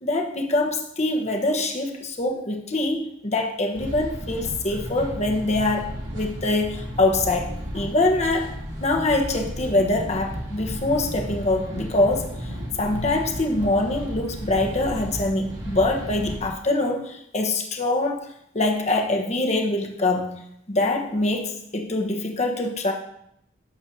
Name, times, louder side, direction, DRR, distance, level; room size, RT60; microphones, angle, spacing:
voice 1, 0.0-8.5 8.8-12.3 12.8-18.2 18.5-20.3 20.7-22.9, left 2 dB, 35° left, 1 dB, 1.1 m, -24 dB
sound 1, 3.7-16.5, equal, 85° right, 2.4 m, -34 dB
11.5 x 6.9 x 2.8 m, 0.75 s
head